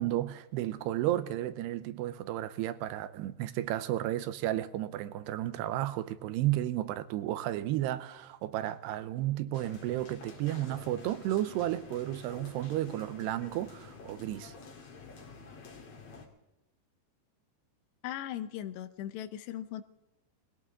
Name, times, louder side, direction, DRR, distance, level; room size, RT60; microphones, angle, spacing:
voice 1, 0.0-14.5, right 14 dB, 85° right, 2.8 m, -33 dB
sound 1, 9.5-16.3, left 4 dB, 45° left, 2.6 m, -49 dB
voice 2, 18.0-19.8, left 11 dB, 85° left, 3.0 m, -38 dB
21.0 x 17.0 x 3.7 m
omnidirectional pair, 4.8 m